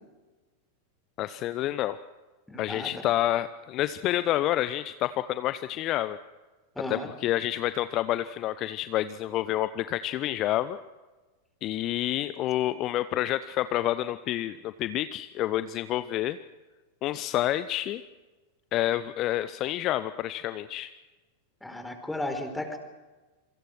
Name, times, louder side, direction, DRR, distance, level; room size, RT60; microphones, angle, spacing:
voice 1, 1.2-2.0 2.6-6.2 6.9-10.8 11.6-16.4 17.0-18.0 18.7-20.9, left 13 dB, 35° left, 14 dB, 0.8 m, -28 dB
voice 2, 2.5-2.9 6.8-7.1 21.6-22.8, left 1 dB, 5° left, 7 dB, 4.5 m, -34 dB
27.5 x 24.5 x 6.3 m, 1.2 s
figure-of-eight pair, 90°, 0 cm